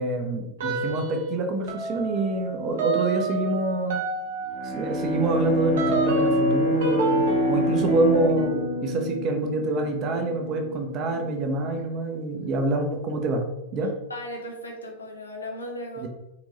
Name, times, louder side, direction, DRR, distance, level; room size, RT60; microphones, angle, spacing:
voice 1, 0.0-4.0 4.6-13.4 13.7-13.9 16.0-16.1, right 2 dB, 35° right, 4 dB, 0.8 m, -26 dB
sound 1, 0.6-1.3 1.7-12.0, right 2 dB, 60° right, 1.0 m, -30 dB
Bowed string instrument, 4.4-10.0, left 1 dB, 45° left, 1.1 m, -26 dB
voice 2, 14.1-16.1, left 1 dB, 75° left, 1 dB, 0.9 m, -36 dB
3.9 x 3.5 x 3.1 m, 0.93 s
figure-of-eight pair, 90°, 0 cm